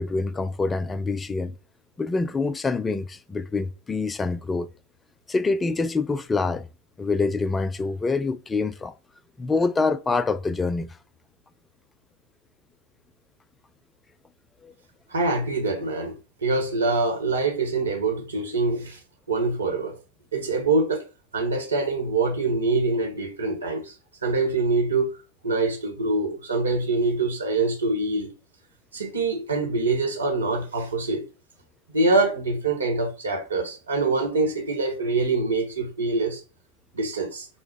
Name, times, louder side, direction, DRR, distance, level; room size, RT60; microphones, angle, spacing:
voice 1, 0.0-1.5 2.0-4.7 5.3-6.7 7.0-8.9 9.4-10.9 14.6-14.7, left 3 dB, 15° left, 0.3 m, -26 dB
voice 2, 15.1-16.1 16.4-19.0 19.3-20.0 20.3-21.0 21.3-23.9 24.2-25.1 25.4-28.3 28.9-31.2 31.9-36.4 36.9-37.5, right 3 dB, 75° right, 1.2 m, -24 dB
5.5 x 2.0 x 4.7 m
figure-of-eight pair, 90°, 0 cm